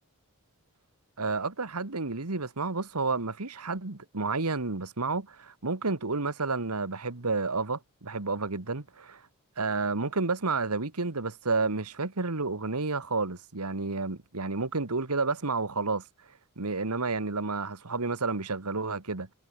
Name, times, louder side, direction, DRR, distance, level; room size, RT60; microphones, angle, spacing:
voice 1, 1.2-9.2 9.6-16.0 16.6-19.3, right 3 dB, 90° right, 1.8 m, -30 dB
head